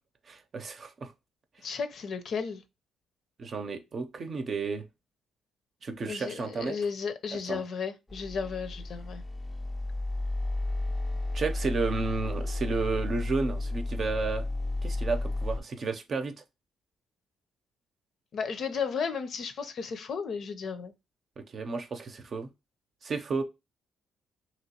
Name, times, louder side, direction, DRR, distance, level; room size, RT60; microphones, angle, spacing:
voice 1, 0.3-1.1 3.4-4.8 5.8-6.8 7.5-7.6 11.3-14.4 14.8-16.3 21.4-22.5 23.0-23.4, right 4 dB, 45° right, 0.6 m, -32 dB
voice 2, 1.6-2.6 6.1-9.2 18.3-20.9, left 5 dB, 60° left, 0.6 m, -34 dB
sound 1, 8.1-15.6, left 2 dB, 15° left, 0.4 m, -32 dB
3.0 x 3.0 x 2.8 m
cardioid pair, 90°, 0 cm